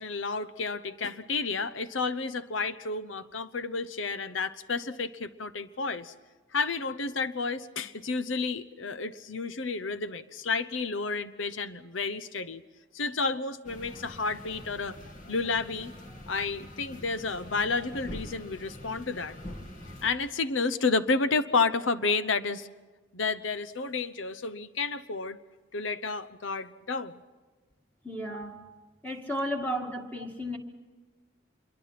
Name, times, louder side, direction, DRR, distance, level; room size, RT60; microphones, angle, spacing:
voice 1, 0.0-6.1 6.5-12.6 12.9-15.0 15.3-15.9 16.3-19.4 20.0-22.7 23.1-25.4 25.7-27.2, left 4 dB, 85° left, 13 dB, 0.9 m, -31 dB
sound 1, 13.6-20.1, left 1 dB, 40° left, 2.5 m, -44 dB
voice 2, 28.0-28.6 29.0-30.6, equal, 10° left, 1 dB, 2.3 m, -33 dB
26.0 x 23.0 x 5.9 m, 1.3 s
head